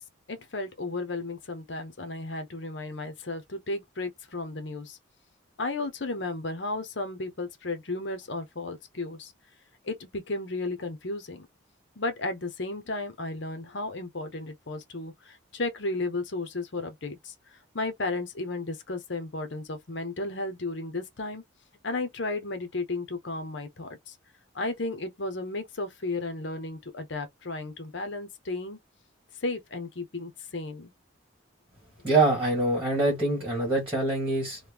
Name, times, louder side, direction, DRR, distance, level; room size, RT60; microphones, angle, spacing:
voice 1, 0.3-5.0 5.6-9.3 9.8-11.5 12.0-21.4 21.8-24.2 24.5-28.8 29.4-30.9, left 2 dB, 60° left, 0.8 m, -34 dB
voice 2, 32.0-34.6, right 2 dB, 10° right, 1.5 m, -24 dB
3.0 x 2.2 x 3.4 m
head